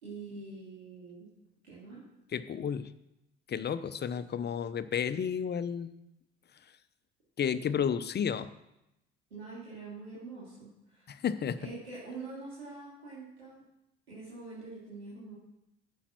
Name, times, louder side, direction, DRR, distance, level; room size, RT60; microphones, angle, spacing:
voice 1, 0.0-1.3 1.6-2.0 9.3-11.1 11.6-13.6 14.1-15.4, right 3 dB, 90° right, -8 dB, 2.8 m, -45 dB
voice 2, 2.3-2.9 3.5-5.9 7.4-8.5 11.1-11.6, left 8 dB, 35° left, 13 dB, 0.7 m, -32 dB
9.9 x 7.2 x 6.1 m, 0.89 s
hypercardioid pair, 60°, 30 cm